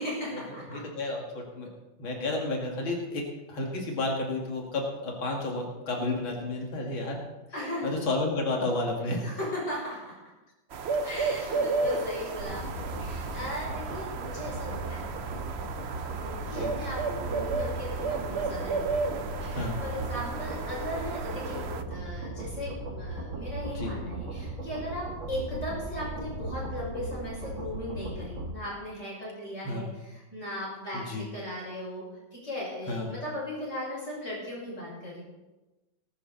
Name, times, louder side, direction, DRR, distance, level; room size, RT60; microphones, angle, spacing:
voice 1, 0.0-0.8 7.5-8.0 9.0-10.2 11.0-15.1 16.2-32.0 32.3-35.2, left 1 dB, 35° left, -5 dB, 6.4 m, -37 dB
voice 2, 0.7-1.7 2.0-3.2 3.5-7.2 7.8-9.3 11.4-11.5 11.9-12.0 16.5-16.7 19.5-19.8 23.7-23.9 29.6-29.8 30.9-31.2 32.9-33.1, left 2 dB, 90° left, 0 dB, 3.1 m, -31 dB
sound 1, 10.7-21.8, right 4 dB, 60° right, 0.7 m, -33 dB
sound 2, 12.4-28.5, right 2 dB, 90° right, 3.3 m, -37 dB
19.0 x 12.5 x 4.0 m, 1.1 s
omnidirectional pair, 2.1 m